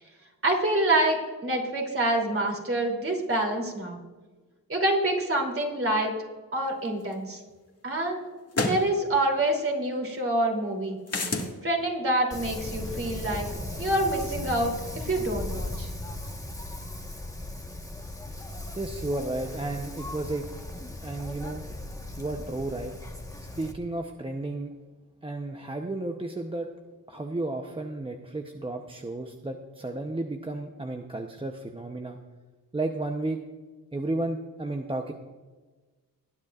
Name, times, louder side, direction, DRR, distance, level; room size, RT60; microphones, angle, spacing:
voice 1, 0.4-4.0 4.7-6.1 6.5-7.4 7.8-8.3 8.5-11.0 11.6-13.5 13.8-15.9, right 1 dB, 35° right, 1 dB, 3.0 m, -26 dB
sound 1, 7.1-7.2 8.5-8.8 11.1-11.5, left 2 dB, 40° left, 1.8 m, -27 dB
Wind, 12.3-23.7, left 1 dB, 10° left, 1.2 m, -37 dB
voice 2, 18.7-20.5 21.0-21.6 22.2-22.9 23.6-24.7 25.2-26.7 27.1-32.2 32.7-33.4 33.9-35.1, right 2 dB, 15° right, 3 dB, 0.7 m, -33 dB
20.0 x 10.0 x 2.4 m, 1.3 s
cardioid pair, 95°, 36 cm